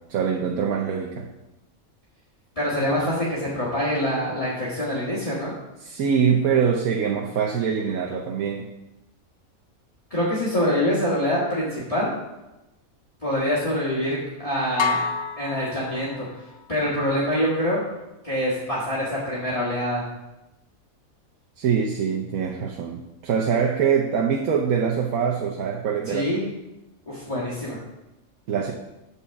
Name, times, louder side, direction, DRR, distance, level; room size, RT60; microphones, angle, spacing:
voice 1, 0.1-1.3 5.8-8.7 21.6-26.3 28.5-28.7, right 7 dB, 85° right, 1 dB, 1.2 m, -24 dB
voice 2, 2.6-5.6 10.1-12.1 13.2-15.0 15.4-16.3 16.7-17.8 18.2-20.1 26.1-26.5 27.1-27.8, equal, 25° left, -9 dB, 1.9 m, -25 dB
sound 1, 14.8-16.6, left 5 dB, 90° left, 0.4 m, -28 dB
8.7 x 4.3 x 7.0 m, 0.99 s
omnidirectional pair, 1.5 m